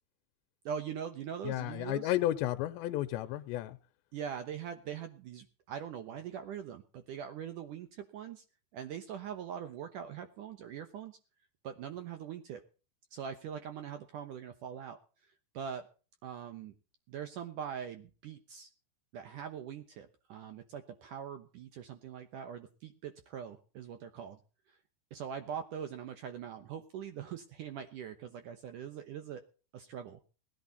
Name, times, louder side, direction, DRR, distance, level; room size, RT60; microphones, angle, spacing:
voice 1, 0.7-2.1 4.1-8.4 8.7-11.2 11.6-12.6 13.1-15.0 15.5-15.8 16.2-16.7 17.1-18.7 19.1-24.4 25.1-29.4 29.7-30.2, right 8 dB, 75° right, 8 dB, 2.0 m, -42 dB
voice 2, 1.4-3.8, left 14 dB, 80° left, 9 dB, 3.0 m, -32 dB
20.0 x 11.0 x 4.1 m, 0.36 s
omnidirectional pair, 5.1 m